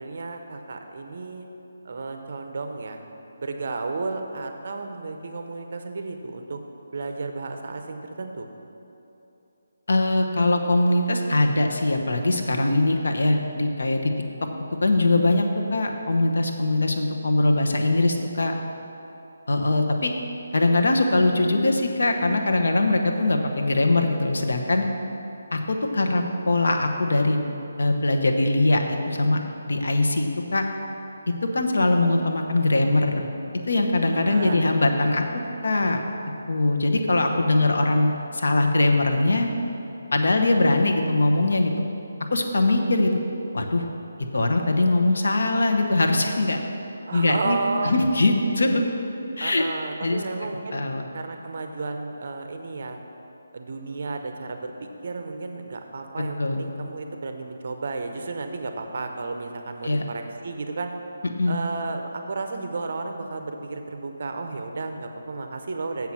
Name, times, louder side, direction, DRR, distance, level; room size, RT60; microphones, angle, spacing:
voice 1, 0.0-1.5 1.8-3.0 3.4-6.6 6.9-8.5 34.1-34.7 47.1-48.0 49.4-50.8 51.1-53.0 53.5-60.9 61.5-66.1, right 3 dB, 50° right, 5 dB, 0.7 m, -32 dB
voice 2, 9.9-14.1 14.8-18.5 19.5-20.1 20.5-24.9 25.5-30.7 31.3-33.3 33.7-35.2 35.6-36.0 36.5-39.5 40.1-41.8 42.3-43.1 43.5-43.9 44.3-46.6 47.1-47.6 47.8-48.8 49.4-49.6 50.0-50.2 50.7-51.0 56.4-56.6 59.8-60.0 61.4-61.6, left 2 dB, 75° left, 3 dB, 1.0 m, -22 dB
7.4 x 5.9 x 7.4 m, 2.9 s
hypercardioid pair, 170°, 0 cm